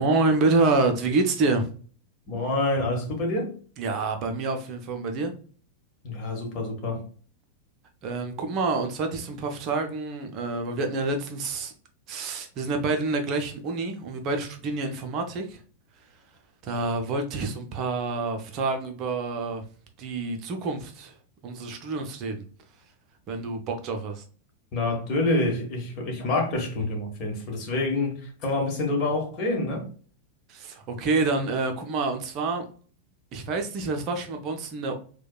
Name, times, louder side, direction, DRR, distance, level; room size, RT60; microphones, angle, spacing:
voice 1, 0.0-1.7 3.8-5.3 8.0-11.7 12.1-15.6 16.6-19.6 20.0-21.1 21.4-22.4 23.3-24.2 30.5-32.6 33.3-35.0, right 3 dB, 35° right, 0.5 m, -27 dB
voice 2, 2.3-3.5 6.0-7.0 24.7-29.8, left 2 dB, 40° left, 1.1 m, -27 dB
4.5 x 2.2 x 2.2 m
figure-of-eight pair, 90°, 0 cm